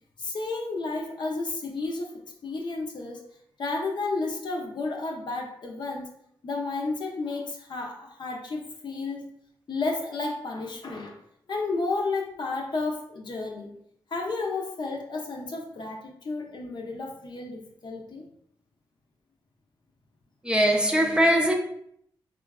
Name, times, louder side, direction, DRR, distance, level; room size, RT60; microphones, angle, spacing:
voice 1, 0.2-3.2 3.6-6.1 6.4-9.3 9.7-11.2 11.5-13.7 14.1-18.3, left 3 dB, 55° left, 0.6 m, -32 dB
voice 2, 20.4-21.5, equal, 10° right, 0.5 m, -21 dB
3.8 x 2.4 x 2.2 m
cardioid pair, 50°, 9 cm